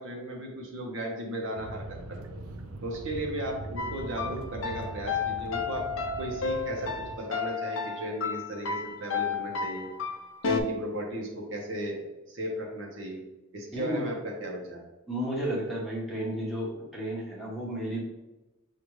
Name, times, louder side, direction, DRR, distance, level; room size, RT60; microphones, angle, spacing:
voice 1, 0.0-2.4 2.8-5.9 6.2-9.9 10.4-13.2 13.5-14.8, right 1 dB, 60° right, 0 dB, 0.9 m, -36 dB
sound 1, 1.6-7.2, right 2 dB, 85° right, 0.5 m, -41 dB
sound 2, 3.8-10.6, left 5 dB, 60° left, 0.5 m, -32 dB
voice 2, 13.7-14.1 15.1-18.0, equal, ahead, -7 dB, 1.0 m, -32 dB
6.6 x 2.4 x 3.1 m, 1.0 s
head